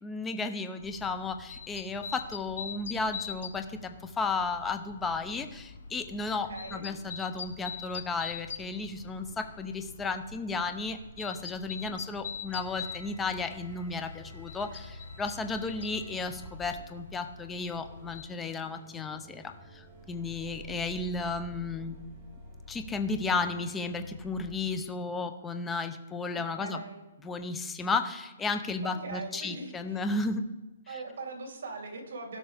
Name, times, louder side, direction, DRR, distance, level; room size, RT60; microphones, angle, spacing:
voice 1, 0.0-19.4 19.7-21.9 22.7-26.8 27.2-30.5 30.9-31.0, left 3 dB, 10° left, 8 dB, 0.6 m, -34 dB
sound 1, 0.8-18.3, left 6 dB, 65° left, 0.9 m, -44 dB
voice 2, 6.3-6.9 11.8-12.3 26.3-27.1 28.8-30.0 30.9-32.4, right 3 dB, 65° right, 1 dB, 2.9 m, -41 dB
sound 2, 12.5-24.5, equal, 25° right, 2.0 m, -49 dB
17.0 x 5.9 x 3.4 m, 1.1 s
hypercardioid pair, 165°, 0 cm